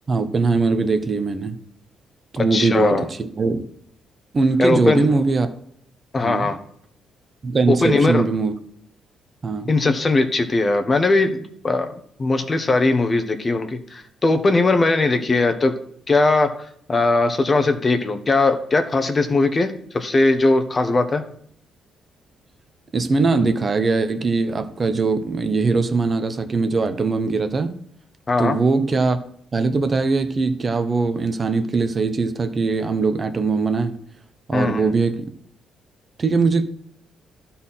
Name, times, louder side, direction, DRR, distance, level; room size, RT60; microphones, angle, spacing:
voice 1, 0.1-1.6 2.3-3.6 4.3-5.5 6.2-6.5 7.4-8.5 9.4-9.7 22.9-27.7 28.4-29.2 29.5-34.0 34.5-35.3 36.2-36.7, right 4 dB, 35° right, 9 dB, 0.9 m, -21 dB
voice 2, 2.4-3.0 4.6-5.1 6.1-6.6 7.7-8.3 9.7-11.9 12.2-15.7 16.1-16.5 16.9-21.2 28.3-28.6 34.5-34.9, left 3 dB, 30° left, 8 dB, 1.1 m, -19 dB
12.0 x 4.3 x 5.7 m, 0.67 s
cardioid pair, 90°, 0 cm